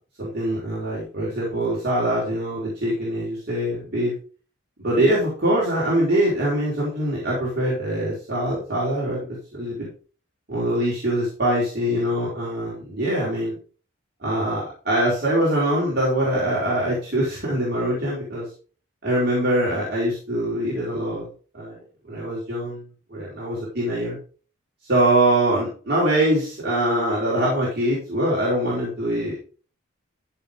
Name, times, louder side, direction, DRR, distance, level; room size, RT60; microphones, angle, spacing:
voice 1, 0.2-4.1 4.8-9.3 9.5-9.9 10.5-13.6 14.2-18.5 19.0-21.3 21.5-21.8 22.1-22.8 23.1-24.2 24.9-29.4, right 1 dB, 50° right, -6 dB, 5.0 m, -23 dB
15.0 x 5.8 x 3.8 m, 0.37 s
head